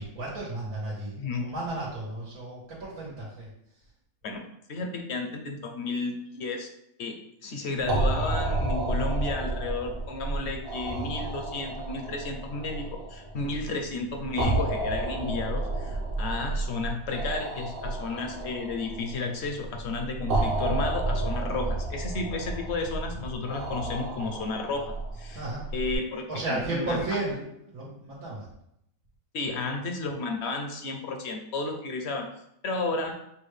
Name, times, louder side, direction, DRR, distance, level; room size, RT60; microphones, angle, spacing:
voice 1, 0.0-3.5 25.3-25.6 26.3-28.5, right 2 dB, 90° right, -6 dB, 1.7 m, -33 dB
voice 2, 1.2-1.5 4.2-4.4 4.7-6.7 7.0-25.4 25.7-27.0 29.3-32.3 32.6-33.1, left 3 dB, 60° left, 4 dB, 0.7 m, -32 dB
sound 1, 7.8-26.0, right 2 dB, 50° right, 0.9 m, -31 dB
6.7 x 2.2 x 3.3 m, 0.76 s
omnidirectional pair, 1.5 m